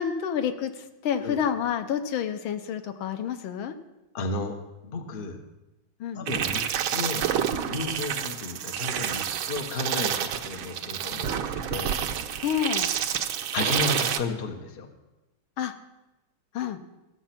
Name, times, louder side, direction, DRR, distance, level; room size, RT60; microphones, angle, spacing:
voice 1, 0.0-3.8 6.0-6.2 12.4-12.9 15.6-15.7 16.5-16.8, left 8 dB, 80° left, 8 dB, 1.6 m, -29 dB
voice 2, 4.1-4.6 4.8-5.4 6.1-7.3 7.6-11.9 13.5-14.9, left 3 dB, 35° left, 4 dB, 0.9 m, -33 dB
sound 1, 6.3-14.2, right 9 dB, 85° right, 1.5 m, -28 dB
15.0 x 7.2 x 5.9 m, 1.0 s
omnidirectional pair, 2.2 m